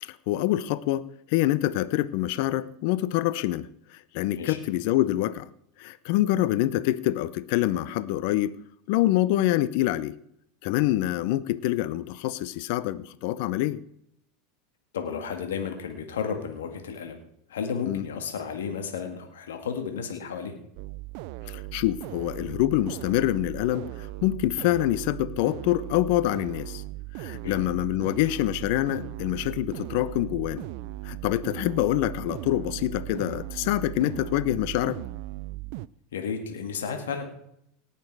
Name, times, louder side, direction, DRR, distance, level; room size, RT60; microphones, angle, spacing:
voice 1, 0.0-5.5 5.8-8.6 8.9-10.2 10.6-13.8 17.9-18.0 21.5-26.8 27.2-30.7 31.0-35.0, left 15 dB, 65° left, 17 dB, 0.6 m, -26 dB
voice 2, 14.9-17.2 17.5-20.6 27.4-27.6 36.1-37.2, left 6 dB, 85° left, 5 dB, 1.9 m, -33 dB
sound 1, 20.8-35.9, right 19 dB, 60° right, 0.4 m, -38 dB
18.5 x 6.9 x 4.8 m, 0.71 s
hypercardioid pair, 95°, 0 cm